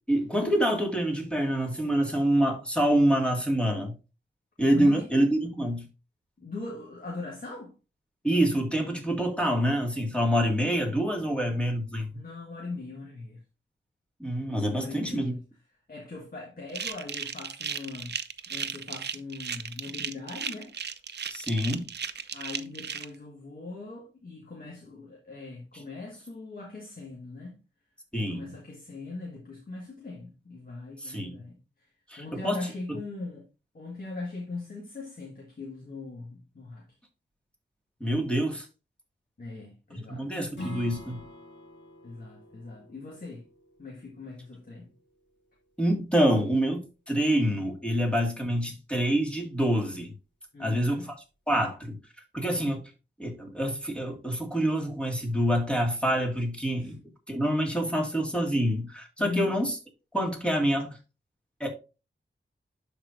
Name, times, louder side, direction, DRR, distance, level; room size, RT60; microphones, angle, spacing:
voice 1, 0.1-3.9 4.6-5.9 8.2-12.2 14.2-15.3 21.3-21.8 28.1-28.5 31.0-31.4 32.1-32.6 38.0-38.7 40.1-41.2 45.8-50.1 50.6-51.1 51.5-52.0 52.3-52.8 53.2-57.0 57.3-59.8 60.1-61.0 61.6-61.7, equal, 5° left, 2.1 m, -26 dB
voice 2, 4.7-5.1 6.4-7.7 11.2-11.3 12.1-13.4 14.7-15.4 15.9-18.2 18.5-20.7 22.3-27.6 28.1-31.9 32.2-33.5 33.7-36.9 39.4-40.3 42.0-43.5 43.8-44.9 50.5-51.1 56.8-56.9 59.2-59.5, left 3 dB, 50° left, 1.7 m, -40 dB
sound 1, 16.7-23.0, right 7 dB, 60° right, 0.5 m, -35 dB
Strum, 40.5-45.7, left 1 dB, 65° left, 2.6 m, -46 dB
11.5 x 4.4 x 2.6 m
wide cardioid pair, 95°, 20 cm